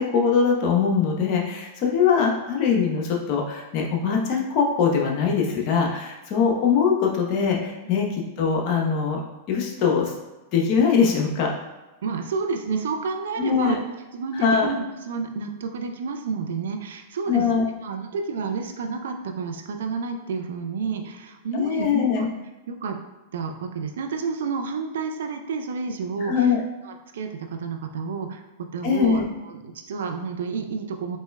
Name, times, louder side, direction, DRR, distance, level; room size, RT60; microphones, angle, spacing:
voice 1, 0.0-9.2 9.5-10.1 10.5-11.5 13.4-13.8 14.4-14.7 17.3-17.6 21.5-22.3 26.2-26.6 28.8-29.2, left 6 dB, 50° left, 0 dB, 0.8 m, -22 dB
voice 2, 12.0-13.8 14.1-21.9 22.2-22.3 22.7-23.0 23.3-26.5 26.8-31.2, right 5 dB, 75° right, 5 dB, 0.4 m, -30 dB
4.1 x 3.1 x 2.2 m, 1.1 s
hypercardioid pair, 105°, 0 cm